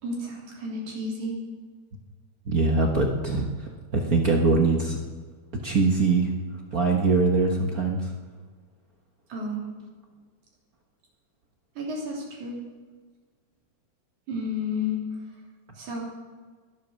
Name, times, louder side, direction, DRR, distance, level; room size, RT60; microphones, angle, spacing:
voice 1, 0.0-1.4 9.3-9.7 11.8-12.6 14.3-15.0 15.7-16.0, left 2 dB, 75° right, -3 dB, 4.7 m, -31 dB
voice 2, 2.5-5.0 5.6-6.3 6.7-8.1, right 3 dB, 55° right, 1 dB, 1.0 m, -23 dB
22.0 x 8.0 x 6.4 m, 1.5 s
omnidirectional pair, 3.4 m